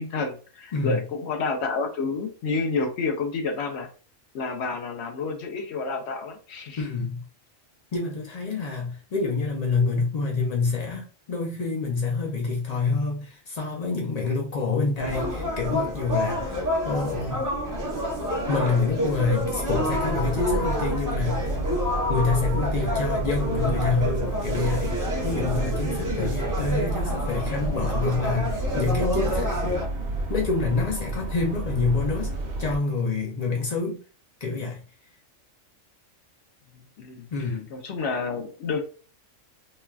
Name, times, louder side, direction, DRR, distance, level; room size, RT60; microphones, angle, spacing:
voice 1, 0.0-3.9 4.3-6.8 36.7-37.3 37.7-38.8, left 4 dB, 65° left, 0.8 m, -29 dB
voice 2, 0.7-1.0 6.8-7.2 7.9-17.4 18.5-21.5 22.1-25.0 25.2-29.9 30.3-32.3 32.6-34.0 34.4-34.8 37.3-37.7, left 4 dB, 85° left, 0.3 m, -27 dB
sound 1, 15.0-29.9, equal, 25° right, 0.5 m, -28 dB
sound 2, 19.7-32.8, right 2 dB, 55° right, 0.8 m, -30 dB
3.2 x 2.3 x 2.2 m
omnidirectional pair, 1.4 m